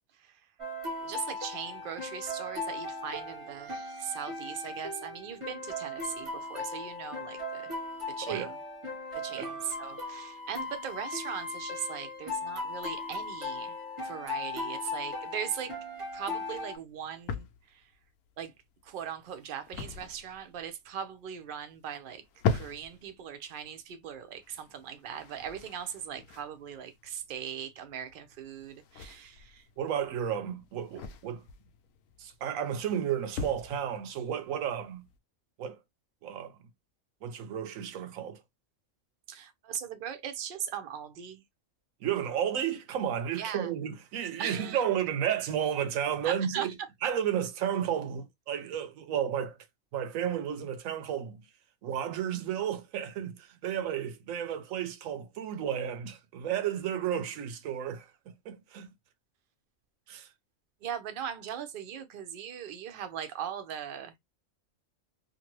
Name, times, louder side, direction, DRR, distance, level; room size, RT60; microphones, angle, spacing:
sound 1, 0.6-16.8, left 2 dB, 25° right, 0.9 m, -38 dB
voice 1, 1.0-7.7 8.1-8.6 9.1-13.8 14.0-15.8 16.1-17.9 18.4-18.5 18.8-22.2 22.5-29.7 39.3-41.4 43.3-43.7 44.4-44.8 46.2-46.7 60.8-64.2, right 8 dB, 55° right, 0.6 m, -39 dB
sound 2, 15.4-35.2, left 5 dB, 90° left, 1.0 m, -41 dB
voice 2, 29.8-31.4 32.2-35.1 35.6-35.8 36.2-36.6 37.2-38.4 42.0-46.7 47.0-49.6 49.9-51.4 51.8-58.9 60.1-60.3, right 9 dB, 85° right, 1.0 m, -32 dB
2.6 x 2.5 x 2.9 m
omnidirectional pair, 1.4 m